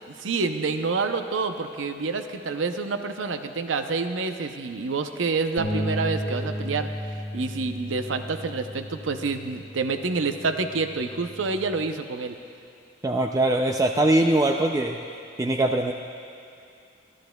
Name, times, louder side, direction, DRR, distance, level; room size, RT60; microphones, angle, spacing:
voice 1, 0.1-6.9 7.3-12.4, right 4 dB, 85° right, 7 dB, 0.6 m, -28 dB
sound 1, 5.6-11.8, equal, 65° left, 1.1 m, -34 dB
voice 2, 13.0-15.0 15.4-15.9, right 1 dB, 20° right, 3 dB, 0.3 m, -22 dB
24.5 x 11.5 x 2.3 m, 2.4 s
head